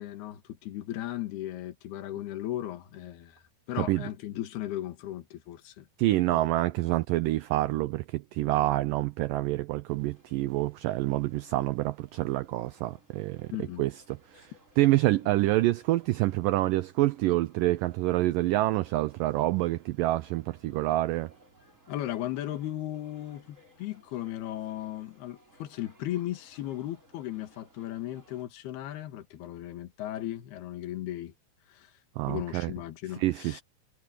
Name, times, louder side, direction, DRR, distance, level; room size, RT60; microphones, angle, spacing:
voice 1, 0.0-3.4 3.7-5.9 6.3-6.4 13.5-13.9 14.4-14.5 21.9-31.3 31.7-31.9 32.3-33.6, left 13 dB, 75° left, 3.7 m, -36 dB
voice 2, 6.0-13.5 13.8-13.9 14.4-14.5 14.8-21.3 32.2-32.7 33.2-33.6, right 17 dB, 85° right, 1.9 m, -27 dB
sound 1, 9.9-28.4, equal, 15° right, 7.3 m, -61 dB
omnidirectional pair, 4.6 m